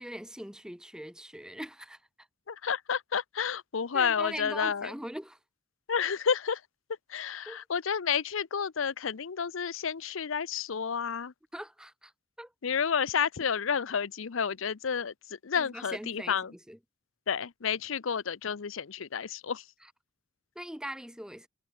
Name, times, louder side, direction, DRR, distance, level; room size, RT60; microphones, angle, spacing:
voice 1, 0.0-2.0 3.9-5.4 7.5-7.6 11.5-12.1 12.4-12.5 15.5-16.8 19.8-19.9 20.5-21.5, equal, 5° right, 3.2 m, -41 dB
voice 2, 2.5-4.9 5.9-6.6 7.1-11.3 12.6-15.1 15.4-16.5 17.3-19.6, left 7 dB, 70° left, 0.6 m, -30 dB
head